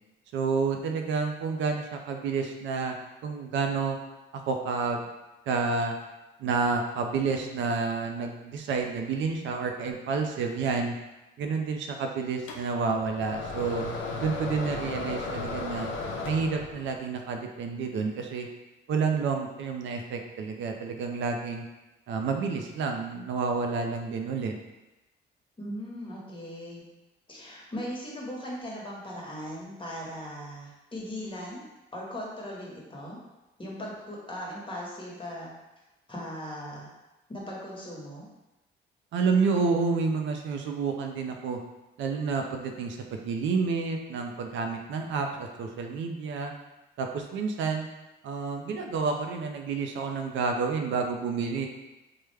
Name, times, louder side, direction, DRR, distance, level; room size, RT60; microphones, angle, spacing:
voice 1, 0.3-3.0 3.2-4.0 4.3-5.1 5.5-6.0 6.4-10.9 11.4-13.8 14.2-15.9 16.2-18.5 18.9-21.6 22.1-24.5 39.1-41.6 42.0-46.5 47.0-47.9 48.2-51.7, right 4 dB, 75° right, 3 dB, 0.4 m, -29 dB
sound 1, 12.5-17.0, left 3 dB, 75° left, 0.5 m, -35 dB
voice 2, 25.6-26.8 27.3-31.7 31.9-33.2 33.6-35.5 36.1-36.9 37.3-38.3, equal, 25° left, -4 dB, 1.1 m, -38 dB
3.4 x 2.1 x 3.3 m, 1.0 s
cardioid pair, 90°, 20 cm